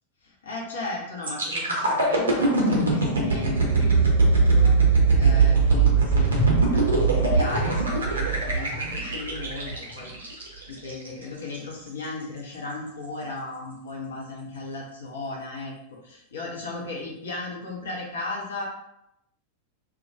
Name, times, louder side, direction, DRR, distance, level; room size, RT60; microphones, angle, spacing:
voice 1, 0.4-15.7 16.0-18.6, left 3 dB, 65° left, -3 dB, 0.6 m, -36 dB
sound 1, 1.2-11.1 11.5-11.7, right 4 dB, 70° right, 0.6 m, -21 dB
2.2 x 2.1 x 2.6 m, 0.80 s
figure-of-eight pair, 90°, 0 cm